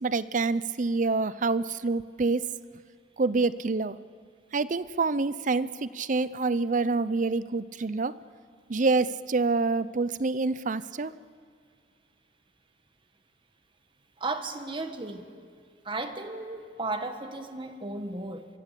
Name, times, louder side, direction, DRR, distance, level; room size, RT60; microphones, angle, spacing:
voice 1, 0.0-2.5 3.2-4.0 4.5-8.1 8.7-11.1, right 3 dB, 45° right, 17 dB, 0.6 m, -27 dB
voice 2, 14.2-15.3 15.9-18.5, right 2 dB, 30° right, 7 dB, 1.7 m, -34 dB
26.0 x 24.0 x 8.4 m, 2.1 s
head